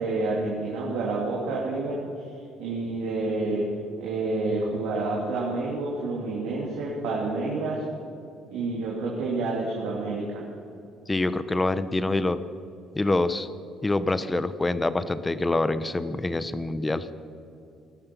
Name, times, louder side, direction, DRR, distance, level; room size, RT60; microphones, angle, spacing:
voice 1, 0.0-2.0 2.6-3.7 4.0-7.8 8.5-10.4, right 3 dB, 90° right, -4 dB, 2.7 m, -28 dB
voice 2, 11.1-12.4 12.9-13.5 13.8-17.1, left 2 dB, 15° left, 13 dB, 0.8 m, -25 dB
18.0 x 12.5 x 6.0 m, 2.6 s
cardioid pair, 95°, 0 cm